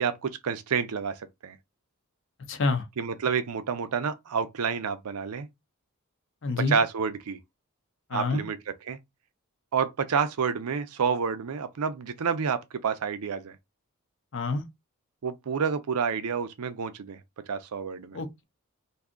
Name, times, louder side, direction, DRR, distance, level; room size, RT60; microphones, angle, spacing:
voice 1, 0.0-1.6 3.0-5.5 6.6-7.4 8.1-8.6 8.9-9.0 9.7-13.6 15.2-17.2 17.5-18.2, right 6 dB, 80° right, 0.5 m, -29 dB
voice 2, 2.5-2.8 6.4-6.8 8.1-8.4 14.3-14.6 18.1-18.4, left 3 dB, 55° left, 0.6 m, -27 dB
2.6 x 2.4 x 3.6 m
head